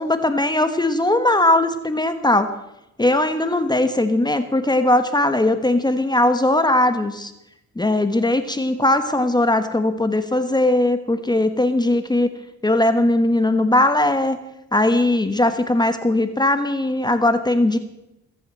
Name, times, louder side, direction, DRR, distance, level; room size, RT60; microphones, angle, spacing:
voice 1, 0.0-2.5 3.0-7.3 7.7-12.3 12.6-14.4 14.7-17.8, left 1 dB, 15° left, 9 dB, 1.4 m, -19 dB
21.5 x 8.5 x 7.6 m, 0.89 s
cardioid pair, 90°, 30 cm